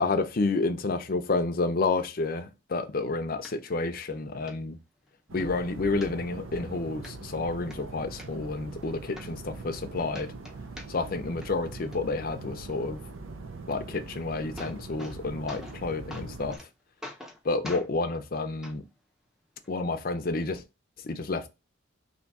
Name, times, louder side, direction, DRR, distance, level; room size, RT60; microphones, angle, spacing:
voice 1, 0.0-4.8 5.3-10.3 10.9-13.0 13.7-16.7 17.4-18.8 19.7-20.6 21.0-21.5, left 3 dB, 45° left, 0.5 m, -30 dB
sound 1, 3.4-3.5 4.0-4.1 4.5-4.6 5.0-5.5 6.0-6.6 7.0-7.1 7.5-8.3 8.8-8.9 9.2-9.8 10.1-11.2 11.4-12.0 14.0-14.1 14.3-15.2 15.5-15.8 16.1-16.7 17.0-17.4 17.6-17.9 18.6-18.7 19.6-19.7, left 1 dB, 5° right, 0.6 m, -44 dB
sound 2, 5.3-16.6, right 3 dB, 85° right, 0.6 m, -42 dB
3.5 x 2.7 x 4.0 m
head